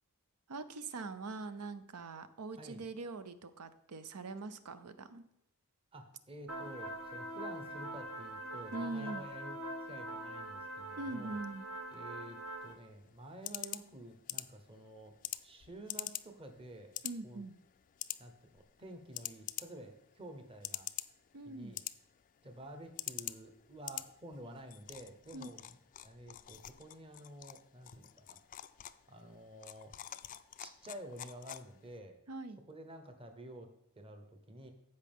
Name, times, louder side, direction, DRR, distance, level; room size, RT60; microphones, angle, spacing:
voice 1, 0.5-5.2 8.7-9.2 11.0-11.7 17.0-17.6 21.3-21.8 25.3-25.5 32.3-32.6, right 3 dB, 85° right, 12 dB, 0.7 m, -43 dB
voice 2, 5.9-9.6 9.9-11.4 11.9-15.1 15.4-17.0 17.2-17.4 18.2-20.9 21.5-21.8 22.4-25.6 26.0-28.4 29.1-30.0 30.6-32.2 32.7-33.7 34.0-34.7, right 1 dB, 25° right, 5 dB, 1.1 m, -50 dB
sound 1, 6.5-12.7, right 1 dB, 65° right, 1.1 m, -43 dB
sound 2, 12.6-32.0, left 13 dB, 35° left, 0.3 m, -47 dB
14.0 x 5.1 x 3.6 m, 0.81 s
head